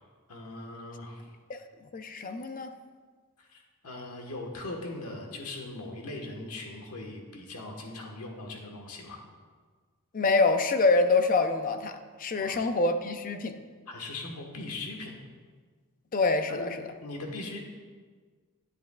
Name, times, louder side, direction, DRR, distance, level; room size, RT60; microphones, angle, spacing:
voice 1, 0.3-1.3 3.4-9.2 12.3-12.6 13.9-15.1 16.5-16.7 17.0-17.7, left 2 dB, 80° left, 1 dB, 1.4 m, -40 dB
voice 2, 1.9-2.7 10.1-13.5 16.1-16.8, left 3 dB, 40° left, 8 dB, 0.5 m, -26 dB
11.0 x 10.0 x 2.3 m, 1.5 s
head